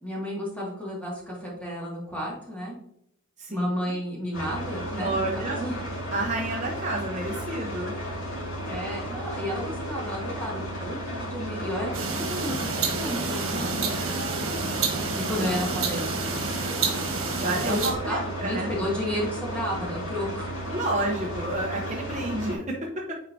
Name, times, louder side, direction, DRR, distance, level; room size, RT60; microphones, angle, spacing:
voice 1, 0.0-2.8 3.5-5.8 8.7-14.2 15.3-16.3 17.6-20.5, equal, 5° left, -4 dB, 2.0 m, -32 dB
sound 1, 4.3-22.6, equal, 80° left, 2.5 m, -34 dB
voice 2, 5.0-5.6 6.1-7.9 13.5-14.1 17.4-18.7 20.7-23.1, right 2 dB, 35° right, -1 dB, 0.8 m, -30 dB
sound 2, 11.9-17.9, right 4 dB, 85° right, 1.3 m, -29 dB
9.2 x 4.5 x 2.7 m, 0.75 s
head